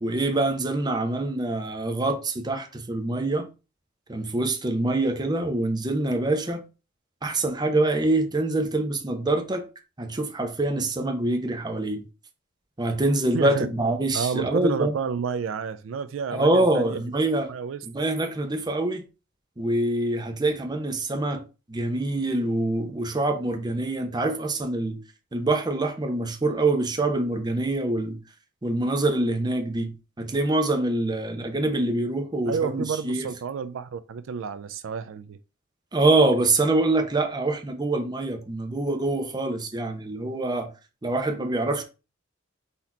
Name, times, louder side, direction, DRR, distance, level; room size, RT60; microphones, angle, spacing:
voice 1, 0.0-3.5 4.1-6.6 7.2-9.7 10.0-12.0 12.8-14.9 16.3-17.5 17.8-19.0 19.6-21.4 21.7-25.0 25.3-28.2 28.6-29.9 30.2-33.3 35.9-40.7 41.0-41.8, right 2 dB, 20° right, 0.7 m, -25 dB
voice 2, 13.3-13.7 14.1-17.0 17.5-17.8 32.5-35.4, right 6 dB, 75° right, 0.3 m, -30 dB
4.1 x 2.8 x 4.3 m
head